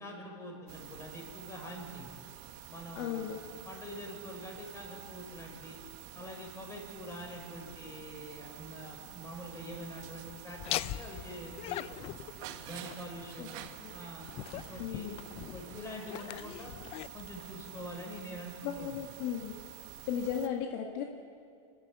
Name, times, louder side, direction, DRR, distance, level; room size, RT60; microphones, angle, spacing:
voice 1, 0.0-2.2 2.7-3.3 3.7-5.8 6.1-12.1 12.6-13.6 13.9-16.7 17.1-19.0, equal, 20° left, 1 dB, 5.5 m, -45 dB
sound 1, 0.7-20.5, right 11 dB, 50° right, 1.5 m, -49 dB
voice 2, 3.0-3.4 13.4-13.5 13.8-14.0 14.8-15.2 18.6-19.6 20.1-21.0, left 8 dB, 55° left, 1 dB, 2.0 m, -36 dB
Laughter, 10.6-18.2, left 14 dB, 40° left, 0.6 m, -42 dB
24.0 x 12.5 x 8.7 m, 2.4 s
hypercardioid pair, 115°, 16 cm